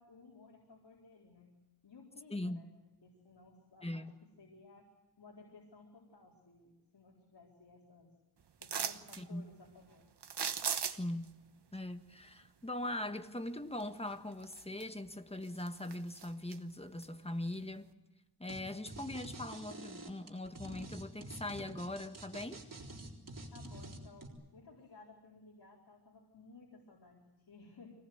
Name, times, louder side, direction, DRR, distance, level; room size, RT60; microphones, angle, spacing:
voice 1, 0.0-1.5 1.8-4.1 4.4-4.9 5.2-8.1 8.6-10.1 23.5-27.9, left 3 dB, 85° left, -2 dB, 4.4 m, -58 dB
voice 2, 2.3-2.6 3.8-4.1 9.2-9.5 10.8-11.3 11.7-17.9 18.4-22.6, left 1 dB, 15° left, 8 dB, 1.5 m, -41 dB
sound 1, 8.6-9.2 10.2-11.2 13.8-13.9 14.4-15.1 15.4-16.6 17.0-17.1, right 7 dB, 80° right, 1.2 m, -37 dB
sound 2, 18.5-18.6 18.9-24.3, right 2 dB, 50° right, 3.9 m, -47 dB
25.0 x 18.5 x 8.0 m, 1.1 s
wide cardioid pair, 85°, 40 cm